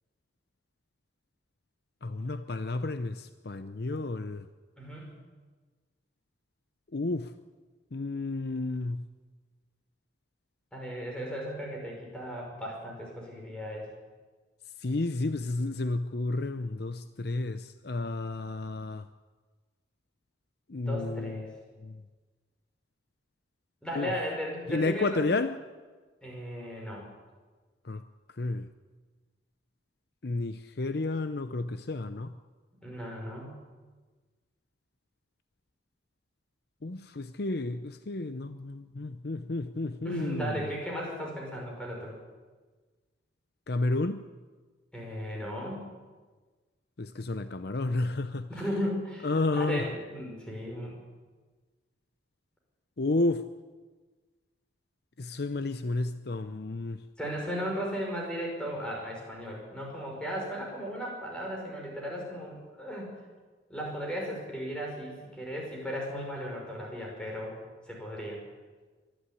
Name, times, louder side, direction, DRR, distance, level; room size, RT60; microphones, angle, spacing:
voice 1, 2.0-4.5 6.9-7.3 7.9-9.0 14.8-19.0 20.7-21.5 21.8-22.0 24.0-24.1 24.7-25.5 27.9-28.0 28.4-28.7 30.2-32.3 36.8-40.6 43.7-44.2 47.0-48.5 49.2-49.8 53.0-53.4 55.2-57.0, left 2 dB, 55° left, 0.7 m, -31 dB
voice 2, 4.8-5.2 10.7-13.9 20.8-21.5 23.8-25.2 26.2-27.1 32.8-33.6 40.0-42.2 44.9-45.8 48.5-51.0 57.2-63.1 63.7-68.4, equal, 5° left, 5.8 m, -36 dB
24.0 x 11.5 x 9.8 m
head